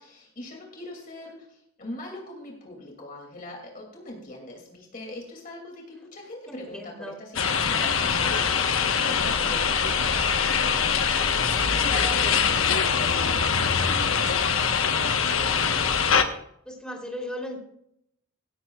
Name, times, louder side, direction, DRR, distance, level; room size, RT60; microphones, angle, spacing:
voice 1, 0.0-14.0, left 1 dB, 45° left, 0 dB, 2.6 m, -42 dB
voice 2, 6.5-7.2 12.0-12.5 16.6-17.6, left 1 dB, 5° left, 0 dB, 3.2 m, -37 dB
sound 1, 7.4-16.2, left 6 dB, 90° left, 1.2 m, -23 dB
16.5 x 14.5 x 2.4 m, 0.73 s
head